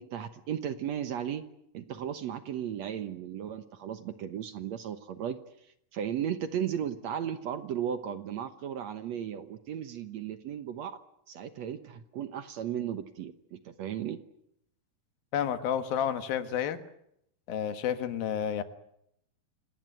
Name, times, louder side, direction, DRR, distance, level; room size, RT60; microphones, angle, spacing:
voice 1, 0.0-1.4 1.7-5.4 5.9-11.0 11.3-14.2, right 9 dB, 65° right, 11 dB, 2.0 m, -35 dB
voice 2, 15.3-16.8 17.5-18.6, left 9 dB, 90° left, 10 dB, 3.4 m, -30 dB
27.5 x 19.0 x 9.3 m, 0.77 s
omnidirectional pair, 4.1 m